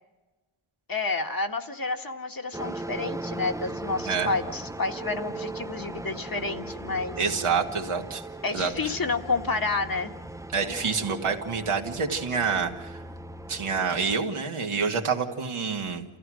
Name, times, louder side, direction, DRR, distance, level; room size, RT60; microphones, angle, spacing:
voice 1, 0.9-7.2 8.4-10.1, left 3 dB, 45° left, 4 dB, 1.7 m, -29 dB
sound 1, 2.5-14.2, right 2 dB, 5° right, 0.7 m, -38 dB
voice 2, 7.2-8.3 8.5-8.7 10.5-13.0 13.5-16.1, right 5 dB, 85° right, 2 dB, 2.1 m, -27 dB
28.5 x 15.5 x 6.3 m, 1.1 s
wide cardioid pair, 65°, 48 cm